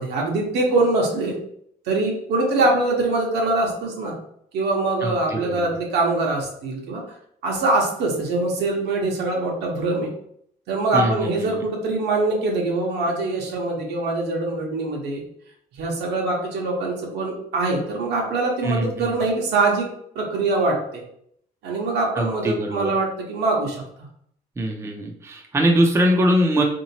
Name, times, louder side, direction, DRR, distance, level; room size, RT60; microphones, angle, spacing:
voice 1, 0.0-1.4 1.9-4.1 4.5-7.0 7.4-10.1 10.7-15.2 15.8-19.9 20.1-21.0 21.6-23.8, right 2 dB, 75° right, -1 dB, 1.1 m, -23 dB
voice 2, 5.0-5.7 10.9-11.6 18.6-19.1 22.2-22.9 24.6-26.6, equal, 15° right, 1 dB, 0.5 m, -22 dB
3.8 x 2.8 x 2.8 m, 0.70 s
cardioid pair, 110°, 17 cm